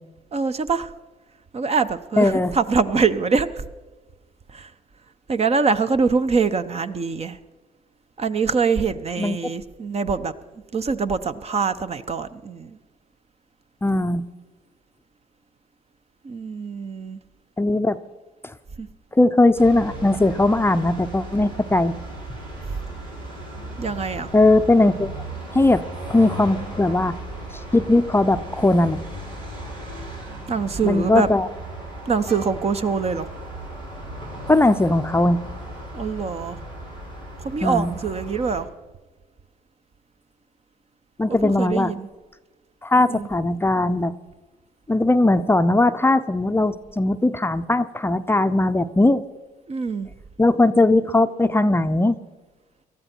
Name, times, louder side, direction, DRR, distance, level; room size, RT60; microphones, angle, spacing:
voice 1, 0.3-0.9 1.5-3.6 4.5-4.7 5.3-7.4 8.2-10.3 10.7-12.8 16.2-17.2 18.8-18.9 23.8-24.3 30.5-31.3 32.1-33.3 35.9-36.6 37.4-38.7 41.3-42.1 43.1-43.3 49.7-50.1, right 5 dB, 40° right, 11 dB, 0.9 m, -24 dB
voice 2, 2.2-2.5 9.2-9.4 13.8-14.2 17.6-18.0 19.1-21.9 24.3-25.1 25.5-25.8 26.1-27.1 27.7-29.0 30.8-31.5 34.5-35.4 37.6-37.9 41.2-41.9 42.8-44.1 44.9-49.2 50.4-52.2, left 2 dB, 15° left, 10 dB, 0.6 m, -19 dB
sound 1, 19.5-38.6, right 1 dB, 90° right, 5.6 m, -36 dB
19.0 x 13.0 x 4.5 m, 1.2 s
supercardioid pair, 70°, 17 cm